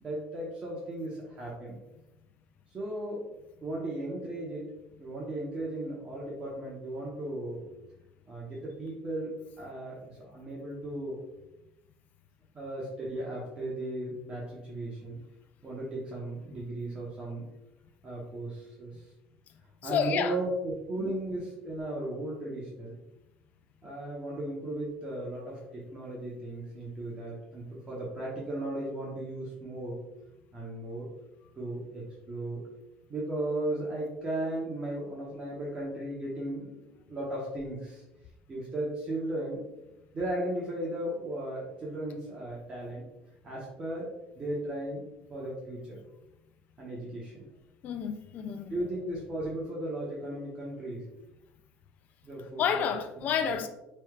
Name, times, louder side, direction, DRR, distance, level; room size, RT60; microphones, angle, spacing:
voice 1, 0.0-1.8 2.7-3.3 3.6-4.6 5.0-7.7 8.3-9.3 9.6-11.2 12.5-15.2 15.6-17.4 18.0-18.9 19.8-23.0 23.8-30.0 30.5-31.1 31.6-32.6 33.1-38.0 38.5-39.6 40.1-43.0 43.4-44.1 44.3-45.0 45.3-46.0 46.8-47.5 48.7-51.0 52.2-52.8 53.4-53.5, right 1 dB, 25° right, -5 dB, 1.1 m, -36 dB
voice 2, 19.8-20.4 21.0-21.1 47.8-48.8 52.6-53.7, left 7 dB, 45° left, 7 dB, 0.3 m, -30 dB
5.4 x 3.3 x 2.4 m, 0.94 s
cardioid pair, 130°, 4 cm